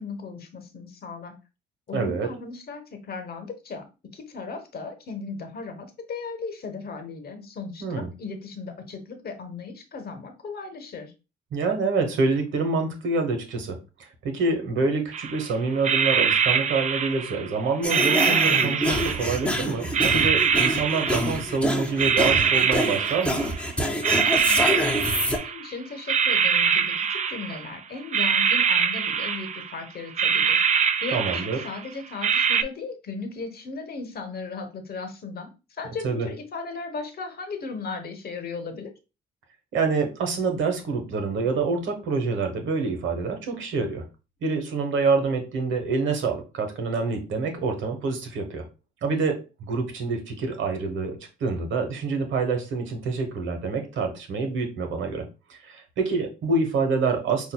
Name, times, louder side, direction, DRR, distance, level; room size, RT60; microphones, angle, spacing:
voice 1, 0.0-1.3 1.9-3.8 4.1-11.1 24.9-35.5 35.8-38.9, left 4 dB, 50° left, 6 dB, 1.0 m, -36 dB
voice 2, 1.9-2.3 7.8-8.1 11.5-13.8 14.2-23.4 31.1-31.6 36.0-36.3 39.7-44.0 44.4-48.6 49.0-57.5, right 4 dB, 75° right, 5 dB, 1.1 m, -26 dB
sound 1, 15.1-15.4 15.8-17.5 17.9-19.5 19.9-21.6 22.0-23.7 24.0-25.7 26.1-27.8 28.1-29.8 30.2-31.8 32.2-32.6, right 7 dB, 40° right, 0.4 m, -23 dB
sound 2, 17.8-25.4, left 1 dB, 5° left, 0.6 m, -27 dB
5.6 x 2.5 x 2.2 m, 0.29 s
cardioid pair, 90°, 20 cm